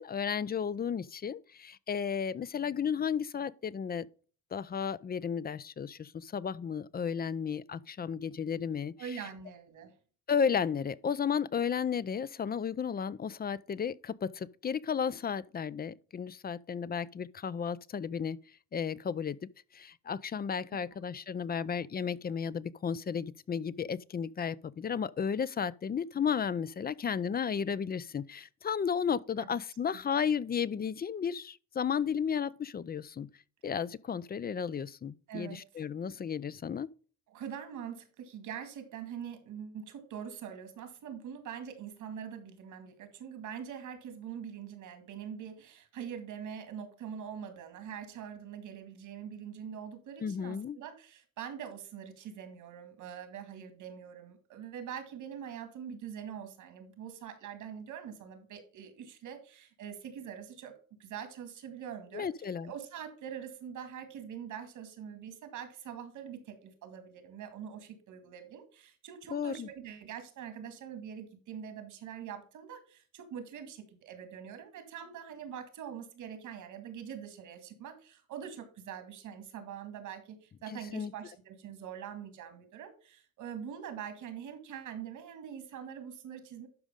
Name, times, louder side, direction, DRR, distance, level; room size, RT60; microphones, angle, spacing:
voice 1, 0.0-4.1 4.5-9.2 10.3-18.4 18.7-19.4 19.7-33.3 33.6-36.9 50.2-50.8 62.1-62.7 69.3-69.7 80.7-81.1, left 7 dB, 30° left, 0.5 m, -33 dB
voice 2, 9.0-9.9 20.7-20.8 21.1-21.2 21.5-21.7 29.4-29.5 35.3-35.6 37.3-62.3 62.6-86.7, right 8 dB, 80° right, 2.3 m, -44 dB
12.0 x 5.0 x 3.6 m
cardioid pair, 90°, 30 cm